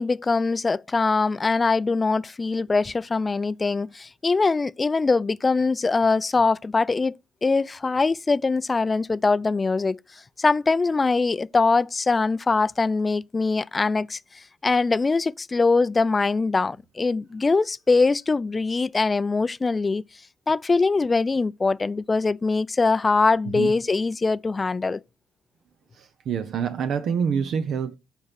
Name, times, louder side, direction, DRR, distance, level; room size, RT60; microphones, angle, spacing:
voice 1, 0.0-7.2 7.4-10.0 10.4-20.0 20.5-25.0, left 3 dB, 30° left, 0.5 m, -22 dB
voice 2, 26.0-27.9, right 7 dB, 60° right, 0.8 m, -26 dB
8.4 x 4.6 x 5.7 m
hypercardioid pair, 50°, 0 cm